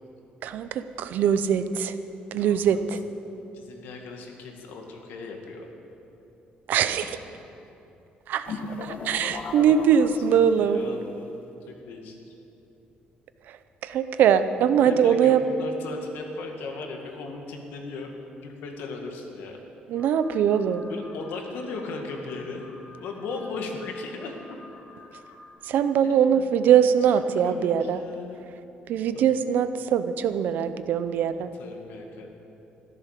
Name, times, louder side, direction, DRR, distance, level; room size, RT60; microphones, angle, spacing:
voice 1, 0.4-2.0 2.3-3.0 6.7-7.1 8.3-10.8 13.4-15.4 19.9-20.9 25.6-28.0 28.9-31.5, right 8 dB, 60° right, 11 dB, 0.6 m, -22 dB
voice 2, 2.4-2.8 3.5-5.6 9.4-9.7 10.3-11.3 11.7-12.3 14.8-19.6 20.9-22.7 23.0-24.6 26.0-26.4 27.1-28.4 29.1-29.2 31.6-32.3, left 3 dB, 85° left, 2 dB, 2.1 m, -37 dB
sound 1, 8.5-10.8, left 4 dB, 45° left, 1.1 m, -36 dB
Alarm, 19.9-25.5, left 2 dB, 60° left, 3.4 m, -50 dB
14.5 x 12.5 x 6.7 m, 2.9 s
cardioid pair, 170°, 3 cm